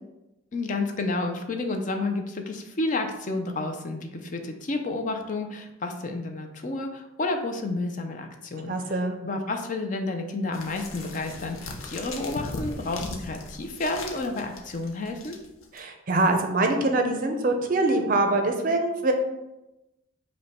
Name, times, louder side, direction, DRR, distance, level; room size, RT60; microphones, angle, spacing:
voice 1, 0.5-15.4, left 2 dB, 40° left, 5 dB, 0.4 m, -30 dB
voice 2, 8.7-9.2 15.7-19.1, right 2 dB, 45° right, 5 dB, 0.5 m, -24 dB
sound 1, 10.5-15.8, left 2 dB, 85° left, 0.6 m, -38 dB
5.2 x 2.2 x 4.1 m, 0.95 s
head